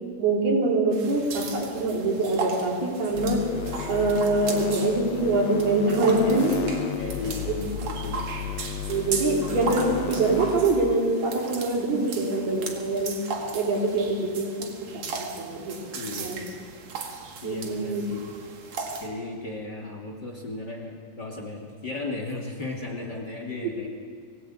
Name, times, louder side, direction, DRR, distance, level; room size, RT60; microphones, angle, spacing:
voice 1, 0.2-3.4 3.9-6.6 7.0-7.1 7.5-7.6 8.9-13.2 13.5-15.8 16.2-16.4 17.4-18.0, right 2 dB, 80° right, -2 dB, 6.0 m, -24 dB
sound 1, 0.9-19.1, right 4 dB, 50° right, 2.9 m, -37 dB
sound 2, 3.1-11.0, left 9 dB, 75° left, 1.6 m, -34 dB
voice 2, 7.0-8.3 15.9-16.3 17.4-18.3 19.0-23.9, left 3 dB, 30° left, 0 dB, 2.7 m, -35 dB
25.5 x 19.0 x 8.8 m, 2.2 s
omnidirectional pair, 4.4 m